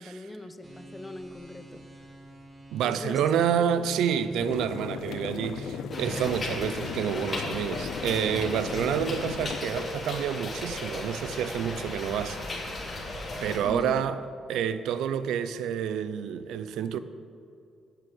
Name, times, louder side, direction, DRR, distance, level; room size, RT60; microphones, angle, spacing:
voice 1, 0.0-1.8 2.8-3.7 13.6-14.1, left 2 dB, 15° left, 0.8 m, -40 dB
sound 1, 0.6-9.7, right 2 dB, 30° right, 1.8 m, -48 dB
voice 2, 2.7-12.4 12.6-12.7 13.4-14.2 14.5-17.0, right 8 dB, 85° right, 0.5 m, -28 dB
sound 2, 4.4-9.6, left 8 dB, 75° left, 0.5 m, -37 dB
sound 3, 5.9-13.6, left 2 dB, 35° left, 3.0 m, -36 dB
8.9 x 7.9 x 7.7 m
cardioid pair, 90°, 0 cm